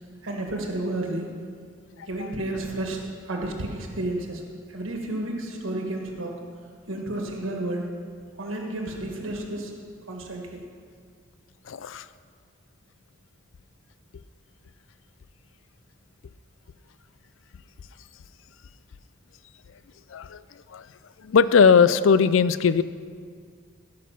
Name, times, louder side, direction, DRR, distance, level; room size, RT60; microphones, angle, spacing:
voice 1, 0.2-1.3 2.1-4.4 4.7-6.3 6.9-7.8 8.4-9.7 10.1-10.6, right 1 dB, 85° right, 1 dB, 1.6 m, -31 dB
voice 2, 11.7-12.1 20.1-20.4 20.7-20.9 21.2-22.8, left 6 dB, 80° left, 15 dB, 0.4 m, -19 dB
16.0 x 6.2 x 5.8 m, 2.1 s
head